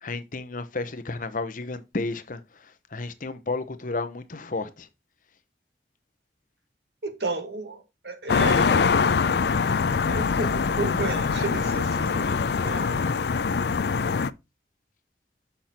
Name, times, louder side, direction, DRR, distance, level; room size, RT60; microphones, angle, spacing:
voice 1, 0.0-2.4 2.9-4.9, left 3 dB, 50° left, 0.9 m, -32 dB
voice 2, 7.0-8.9 10.1-13.2, right 3 dB, 65° right, 1.6 m, -33 dB
sound 1, 8.3-14.3, left 5 dB, 65° left, 0.4 m, -23 dB
6.8 x 5.9 x 4.4 m
head